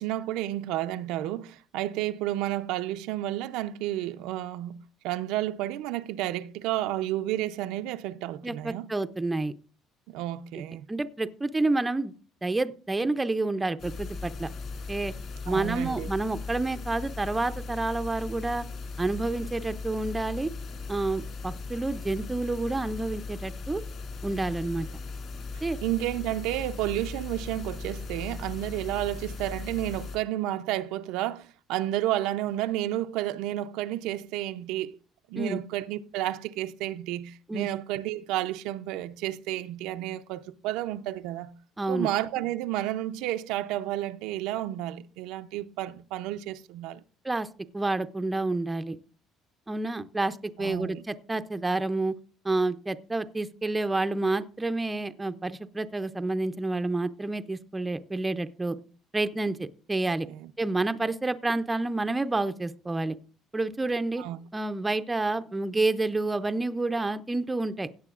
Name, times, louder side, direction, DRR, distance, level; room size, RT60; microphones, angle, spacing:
voice 1, 0.0-8.9 10.1-10.8 15.5-16.1 25.5-35.0 35.3-41.5 41.9-47.0 50.6-51.0 60.3-60.5 64.2-64.4, right 14 dB, 90° right, 0.5 m, -31 dB
voice 2, 8.4-9.5 10.5-10.6 10.9-12.1 12.4-14.5 14.9-15.1 15.5-18.6 19.0-20.5 20.9-23.8 24.2-24.9 25.6-25.8 35.3-35.6 37.5-37.7 41.8-42.1 47.2-47.5 47.7-49.0 49.7-52.2 52.4-58.8 59.1-60.3 60.6-63.2 63.5-64.2 64.5-67.9, right 2 dB, 10° right, 0.4 m, -29 dB
sound 1, 13.8-30.2, left 4 dB, 45° left, 2.3 m, -38 dB
16.5 x 9.1 x 2.4 m
cardioid pair, 165°, 0 cm